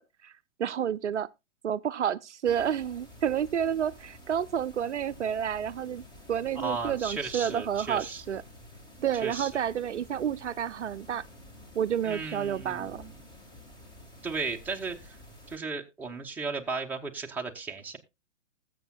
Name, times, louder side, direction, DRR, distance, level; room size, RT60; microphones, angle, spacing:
voice 1, 0.6-1.3 1.6-6.0 6.3-8.4 9.0-11.2 11.8-13.0, right 9 dB, 65° right, 0.6 m, -30 dB
sound 1, 2.4-15.6, left 1 dB, 10° left, 1.9 m, -50 dB
voice 2, 6.6-8.2 9.2-9.5 12.0-13.1 14.2-15.2 15.5-18.0, right 4 dB, 5° right, 0.9 m, -35 dB
20.0 x 7.5 x 2.4 m
figure-of-eight pair, 120°, 37 cm